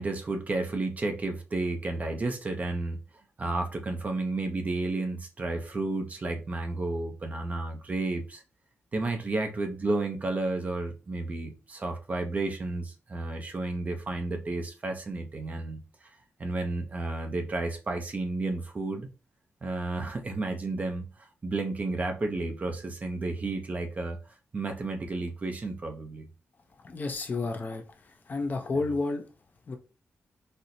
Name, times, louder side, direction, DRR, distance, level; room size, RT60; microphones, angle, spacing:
voice 1, 0.0-3.0 3.4-8.4 8.9-15.8 16.4-19.1 19.6-24.2 24.5-26.3, right 2 dB, 35° right, 0.5 m, -32 dB
voice 2, 26.8-27.8 28.3-29.2 29.7-29.8, left 3 dB, 40° left, 0.5 m, -30 dB
4.2 x 2.0 x 2.6 m
wide cardioid pair, 125°, 5 cm